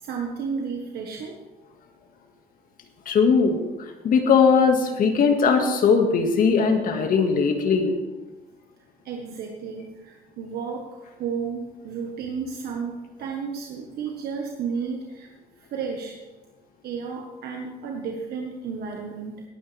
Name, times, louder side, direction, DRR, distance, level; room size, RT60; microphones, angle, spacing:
voice 1, 0.0-1.3 9.0-15.3 15.6-16.1 16.8-19.4, right 5 dB, 70° right, 1 dB, 1.4 m, -32 dB
voice 2, 3.1-3.6 4.0-8.0, left 5 dB, 55° left, 4 dB, 1.9 m, -19 dB
18.0 x 9.1 x 3.4 m, 1.2 s
cardioid pair, 110°, 17 cm